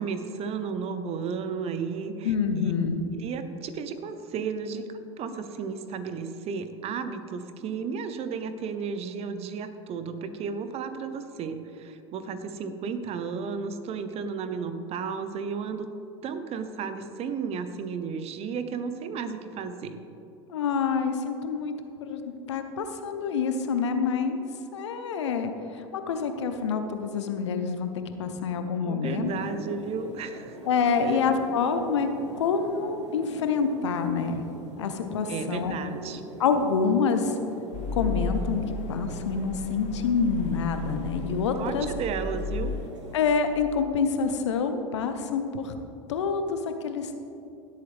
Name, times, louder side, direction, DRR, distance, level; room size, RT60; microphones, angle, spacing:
voice 1, 0.0-2.7 3.1-15.9 16.2-20.0 28.8-30.6 31.0-31.3 35.3-36.2 41.6-42.8, right 5 dB, 45° right, 10 dB, 0.9 m, -33 dB
voice 2, 2.2-3.0 20.5-21.7 22.0-24.4 24.7-25.5 25.9-27.9 28.2-29.3 30.7-32.1 32.4-34.4 34.8-35.8 36.4-37.3 37.9-38.6 38.9-41.9 43.1-45.7 46.1-47.3, left 5 dB, 80° left, 8 dB, 0.9 m, -27 dB
sound 1, 29.2-43.2, right 1 dB, 90° right, 1.3 m, -43 dB
sound 2, 37.7-42.9, left 2 dB, 55° left, 1.0 m, -34 dB
16.5 x 8.1 x 3.5 m, 2.8 s
hypercardioid pair, 80°, 15 cm